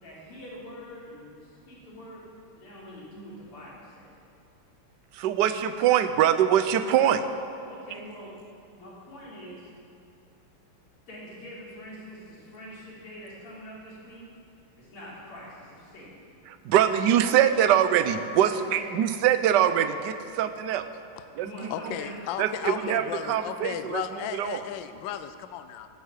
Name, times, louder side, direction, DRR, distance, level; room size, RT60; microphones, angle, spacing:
voice 1, 0.0-2.2 2.6-4.1 7.7-8.4 8.7-9.7 11.1-14.3 14.8-16.2 18.5-18.9 21.4-22.2 22.8-23.1, equal, 85° left, -7 dB, 4.6 m, -44 dB
voice 2, 5.1-7.2 16.5-20.9 21.4-22.0 22.4-24.0 24.3-24.6, right 10 dB, 65° right, 10 dB, 1.1 m, -23 dB
voice 3, 21.7-25.9, left 10 dB, 70° left, 10 dB, 1.3 m, -35 dB
12.5 x 10.0 x 8.2 m, 2.5 s
omnidirectional pair, 2.4 m